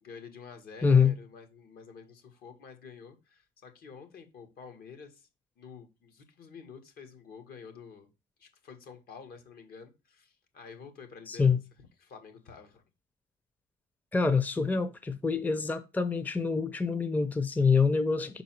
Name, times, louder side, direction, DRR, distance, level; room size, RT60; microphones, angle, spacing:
voice 1, 0.0-5.3 5.6-8.1 8.4-11.6 12.0-12.8, left 5 dB, 65° left, 1.7 m, -49 dB
voice 2, 0.8-1.1 11.3-11.6 14.1-18.4, left 5 dB, 10° left, 0.5 m, -26 dB
5.8 x 4.0 x 4.4 m
cardioid pair, 110°, 17 cm